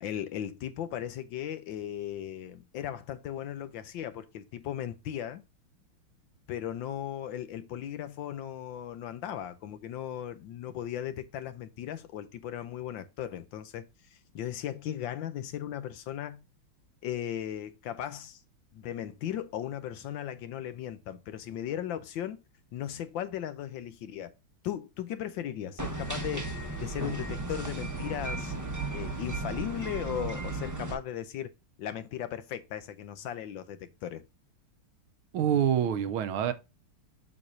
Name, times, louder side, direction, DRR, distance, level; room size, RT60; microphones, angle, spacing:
voice 1, 0.0-5.4 6.5-16.4 17.0-18.4 18.7-22.4 22.7-24.3 24.6-26.5 26.8-28.5 28.9-31.5 31.8-34.2, left 10 dB, 75° left, 1.3 m, -37 dB
sound 1, 25.8-30.9, right 2 dB, 15° right, 0.7 m, -35 dB
voice 2, 35.3-36.5, right 9 dB, 75° right, 1.5 m, -26 dB
7.6 x 6.4 x 2.6 m
omnidirectional pair, 2.3 m